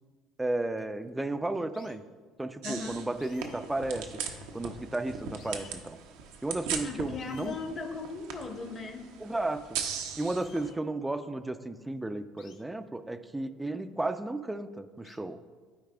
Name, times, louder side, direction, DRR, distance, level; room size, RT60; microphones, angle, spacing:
voice 1, 0.4-2.0 2.4-4.2 4.5-6.0 6.4-7.6 9.2-9.8 10.2-15.4, right 2 dB, 10° right, 10 dB, 0.5 m, -33 dB
sound 1, 0.8-1.1 1.7-2.0 3.2-4.8 5.0-5.1 5.4-5.8 6.8-6.9 7.2-7.8 10.2-10.8 12.4-12.6 13.8-13.9 15.0-15.2, left 7 dB, 60° left, 0.7 m, -57 dB
voice 2, 2.6-3.1 6.8-9.2, left 4 dB, 35° left, 6 dB, 1.0 m, -38 dB
sound 2, 2.6-10.7, right 6 dB, 70° right, 0.7 m, -39 dB
12.5 x 4.7 x 2.3 m, 1.5 s
hypercardioid pair, 60°, 0 cm